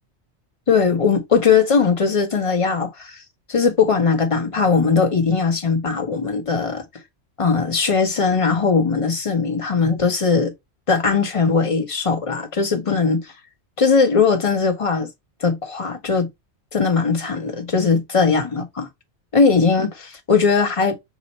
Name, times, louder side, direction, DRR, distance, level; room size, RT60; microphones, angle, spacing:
voice 1, 0.7-3.2 3.5-6.8 7.4-10.5 10.9-13.3 13.8-15.1 15.4-16.3 16.7-18.9 19.3-21.0, left 5 dB, 30° left, 0.9 m, -19 dB
6.0 x 2.1 x 4.1 m
omnidirectional pair, 1.2 m